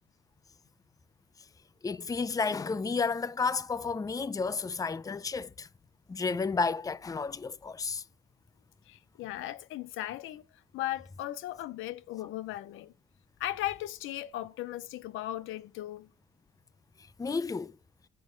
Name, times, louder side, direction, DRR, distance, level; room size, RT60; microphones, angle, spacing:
voice 1, 1.8-5.7 6.1-8.0 17.2-17.7, left 4 dB, 20° left, 0.5 m, -31 dB
voice 2, 8.9-10.4 10.7-12.9 13.4-16.1, left 14 dB, 90° left, 0.6 m, -37 dB
11.0 x 5.2 x 5.0 m
cardioid pair, 90°, 20 cm